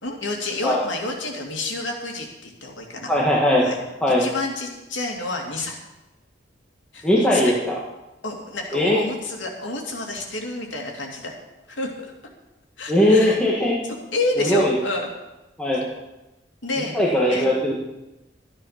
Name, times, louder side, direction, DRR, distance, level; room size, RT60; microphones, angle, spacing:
voice 1, 0.0-3.1 3.6-3.8 4.2-5.8 6.9-7.5 8.2-11.4 11.7-12.1 12.8-13.4 13.8-15.1 15.7-15.8 16.6-16.9 17.3-17.5, left 2 dB, 85° left, 1 dB, 2.6 m, -29 dB
voice 2, 3.1-3.6 4.0-4.3 7.0-7.8 8.7-9.0 12.9-13.8 14.4-14.7 15.6-15.8 16.9-17.8, left 1 dB, 5° left, -5 dB, 1.7 m, -19 dB
13.0 x 9.8 x 5.9 m, 1.0 s
head